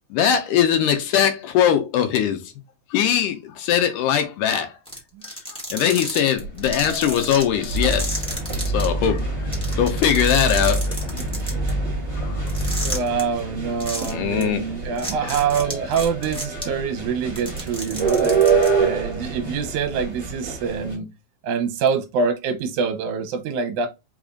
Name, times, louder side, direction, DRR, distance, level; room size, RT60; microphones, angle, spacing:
voice 1, 0.1-2.5 2.9-4.7 5.3-5.4 5.7-8.2 8.7-10.9 12.2-12.3 14.1-14.7 15.2-15.4 16.3-16.8, left 9 dB, 80° left, 2.1 m, -21 dB
sound 1, 4.9-8.8 9.2-9.3 9.5-11.7 12.5-13.2 13.8-14.1 14.4-14.5 15.0-16.6 17.2-18.7, equal, 5° left, 0.4 m, -32 dB
sound 2, 6.4-20.9, right 5 dB, 20° right, 2.2 m, -28 dB
sound 3, 7.7-13.0, right 1 dB, 55° right, 0.9 m, -26 dB
voice 2, 12.7-18.4 18.8-21.1 21.4-23.9, right 6 dB, 75° right, 1.9 m, -25 dB
4.9 x 4.1 x 2.4 m
omnidirectional pair, 3.9 m